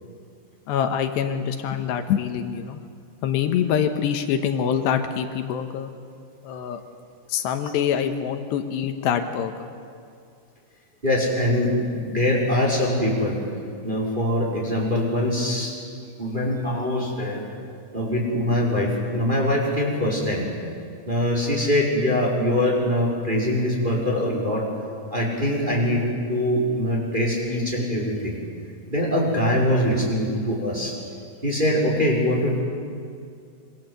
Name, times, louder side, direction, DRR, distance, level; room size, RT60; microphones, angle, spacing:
voice 1, 0.7-2.8 3.2-5.9 6.4-6.8 7.3-9.7, left 8 dB, 75° left, 7 dB, 3.1 m, -25 dB
voice 2, 11.0-13.4 13.8-15.7 16.2-17.4 17.9-20.5 21.0-24.7 25.1-28.4 28.9-30.9 31.4-32.6, left 1 dB, 10° right, -3 dB, 4.9 m, -23 dB
26.0 x 25.0 x 8.1 m, 2.3 s
omnidirectional pair, 5.4 m